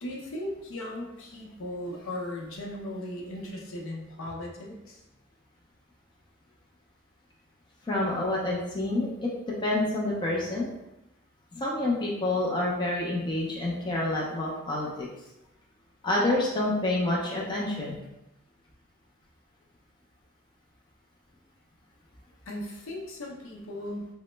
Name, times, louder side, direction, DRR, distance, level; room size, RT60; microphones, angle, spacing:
voice 1, 0.0-5.0 22.5-24.1, left 1 dB, 65° left, -1 dB, 0.6 m, -37 dB
voice 2, 7.8-10.7 11.5-15.1 16.0-18.0, left 2 dB, 20° left, -4 dB, 0.4 m, -28 dB
3.0 x 2.0 x 3.1 m, 0.92 s
head